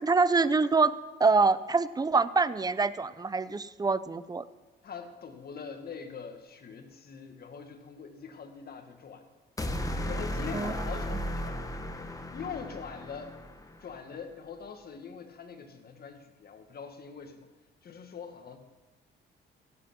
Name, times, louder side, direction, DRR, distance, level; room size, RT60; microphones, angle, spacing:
voice 1, 0.0-4.4 10.5-11.2, right 4 dB, 20° right, 16 dB, 0.6 m, -26 dB
voice 2, 4.8-9.2 10.0-11.6 12.3-13.3 13.8-17.5 17.8-18.6, left 6 dB, 50° left, 6 dB, 1.7 m, -43 dB
sound 1, 9.6-13.8, left 1 dB, 15° left, 1.3 m, -35 dB
16.5 x 8.0 x 6.0 m, 1.2 s
cardioid pair, 90°, 20 cm